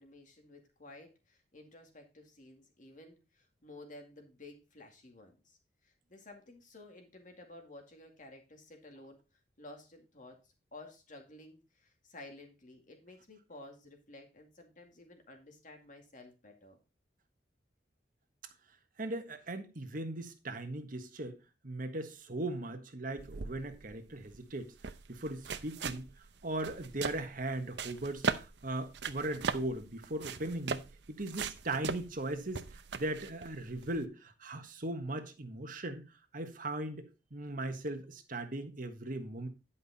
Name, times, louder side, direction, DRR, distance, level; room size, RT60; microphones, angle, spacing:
voice 1, 0.0-9.2 9.6-16.8, left 2 dB, 45° left, 2.3 m, -53 dB
voice 2, 19.0-21.4 21.6-24.7 25.1-26.1 26.4-30.8 31.1-32.6 32.9-36.0 36.3-39.5, right 1 dB, 50° right, 1.4 m, -38 dB
sound 1, 23.2-34.0, right 5 dB, 70° right, 0.7 m, -40 dB
10.5 x 5.6 x 4.2 m
head